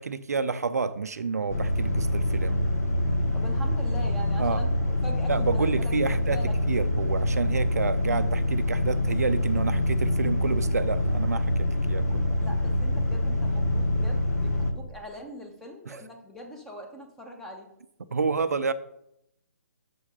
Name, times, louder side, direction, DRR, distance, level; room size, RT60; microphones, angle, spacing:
voice 1, 0.0-2.6 4.4-4.6 5.3-12.3 15.9-16.0 18.1-18.7, right 4 dB, 65° right, 12 dB, 0.5 m, -29 dB
sound 1, 1.5-14.7, left 1 dB, 65° left, 1.0 m, -25 dB
voice 2, 3.3-6.6 12.3-17.7, equal, 5° left, 1 dB, 0.9 m, -42 dB
6.2 x 5.0 x 5.2 m, 0.77 s
figure-of-eight pair, 135°, 9 cm